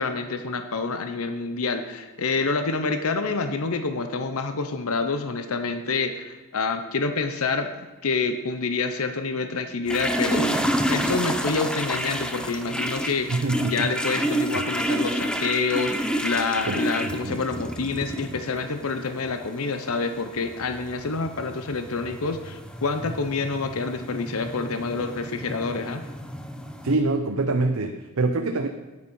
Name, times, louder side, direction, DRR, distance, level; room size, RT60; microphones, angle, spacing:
voice 1, 0.0-7.7 8.0-26.0, left 4 dB, 75° left, 8 dB, 0.8 m, -27 dB
sound 1, 9.9-27.0, equal, 5° left, 0.7 m, -29 dB
voice 2, 13.3-13.9 14.5-14.6 16.7-16.8 17.2-17.4 26.8-28.7, right 3 dB, 70° right, 5 dB, 0.7 m, -24 dB
9.6 x 9.5 x 5.6 m, 1.2 s
head